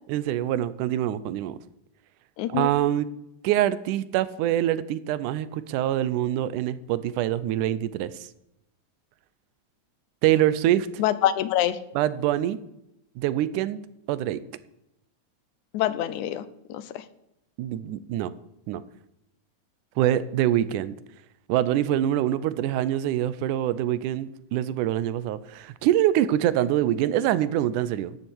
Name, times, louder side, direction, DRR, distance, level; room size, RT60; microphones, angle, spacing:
voice 1, 0.1-1.6 2.5-3.1 3.4-8.1 10.2-10.9 12.0-12.6 13.2-13.8 14.1-14.4 17.6-18.3 18.7-18.8 20.0-20.9 21.5-28.2, right 12 dB, 85° right, 16 dB, 2.2 m, -24 dB
voice 2, 2.4-2.7 11.0-11.8 15.7-17.0, left 12 dB, 80° left, 15 dB, 2.1 m, -26 dB
12.0 x 7.2 x 7.8 m, 0.84 s
omnidirectional pair, 3.5 m